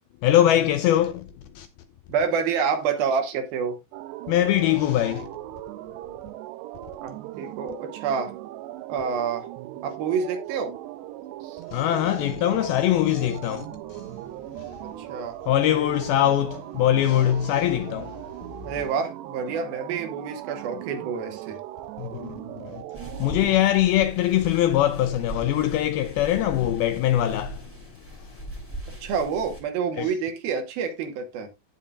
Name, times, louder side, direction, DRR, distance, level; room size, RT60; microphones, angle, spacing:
voice 1, 0.2-1.3 1.6-1.7 4.3-5.3 11.7-14.1 14.6-14.8 15.4-18.3 22.0-22.8 23.2-27.7 28.2-28.4 30.0-30.1, left 12 dB, 85° left, 2.2 m, -22 dB
voice 2, 2.1-3.8 7.0-8.3 8.9-9.5 9.8-10.7 11.4-11.6 15.0-15.4 18.6-21.6 29.0-31.5, right 6 dB, 70° right, 2.8 m, -28 dB
sound 1, 3.9-23.5, right 15 dB, 85° right, 2.8 m, -39 dB
sound 2, 22.9-29.6, right 1 dB, 5° right, 2.1 m, -40 dB
16.5 x 5.6 x 2.4 m
omnidirectional pair, 4.9 m